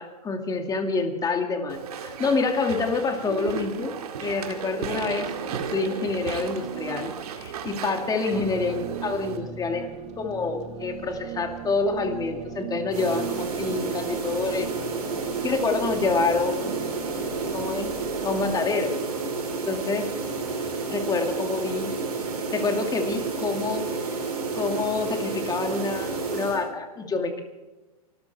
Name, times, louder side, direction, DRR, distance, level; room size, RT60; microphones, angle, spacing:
voice 1, 0.0-3.9 4.2-9.9 10.2-14.7 15.4-16.7 17.5-17.9 18.2-18.9 19.7-20.1 20.9-21.9 22.5-24.0 24.6-27.4, left 4 dB, 20° left, 4 dB, 2.4 m, -27 dB
Walk footsteps / Chatter / Squeak, 1.7-9.4, right 7 dB, 70° right, 2.3 m, -34 dB
sound 1, 8.3-18.6, right 8 dB, 35° right, 1.6 m, -38 dB
sound 2, 12.9-26.6, right 4 dB, 90° right, 5.9 m, -30 dB
24.0 x 14.0 x 3.5 m, 1.1 s
hypercardioid pair, 115°, 20 cm